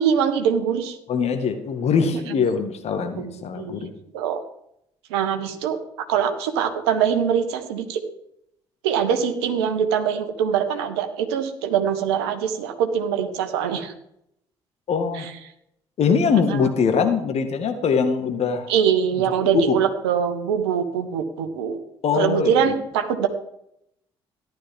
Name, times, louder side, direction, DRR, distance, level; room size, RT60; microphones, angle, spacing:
voice 1, 0.0-1.0 3.2-4.4 5.1-5.8 6.1-8.0 8.8-13.9 15.1-15.3 16.5-16.7 18.7-21.8 22.2-23.3, right 8 dB, 75° right, 7 dB, 1.4 m, -23 dB
voice 2, 1.1-3.9 14.9-15.3 16.0-18.7 19.5-19.8 22.0-22.7, left 5 dB, 50° left, 7 dB, 1.8 m, -22 dB
14.0 x 11.5 x 3.7 m, 0.76 s
figure-of-eight pair, 50°, 14 cm